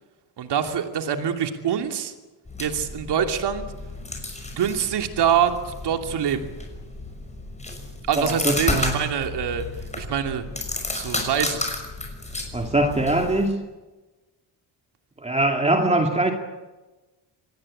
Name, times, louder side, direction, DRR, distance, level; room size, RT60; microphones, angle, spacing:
voice 1, 0.4-2.1 2.6-3.7 4.5-6.4 8.1-9.6 9.9-10.4 10.9-11.7, right 8 dB, 75° right, 5 dB, 2.9 m, -25 dB
sound 1, 2.4-13.5, left 2 dB, 15° left, 6.0 m, -32 dB
voice 2, 8.2-9.0 12.5-13.6 15.2-16.3, right 2 dB, 15° right, 2 dB, 2.4 m, -22 dB
26.0 x 19.5 x 8.8 m, 1.2 s
cardioid pair, 135°, 42 cm